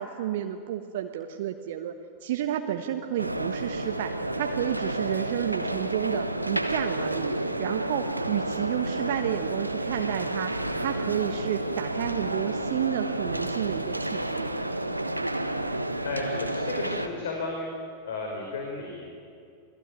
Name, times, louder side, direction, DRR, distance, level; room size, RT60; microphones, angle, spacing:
voice 1, 0.0-1.9 2.2-4.1 4.4-7.3 7.6-14.5, right 10 dB, 55° right, 6 dB, 1.3 m, -31 dB
sound 1, 3.2-17.1, right 1 dB, 85° right, 1.3 m, -30 dB
voice 2, 16.0-17.7 18.0-19.1, left 3 dB, 60° left, 1 dB, 4.9 m, -33 dB
28.0 x 20.0 x 9.5 m, 2.4 s
figure-of-eight pair, 90°, 0 cm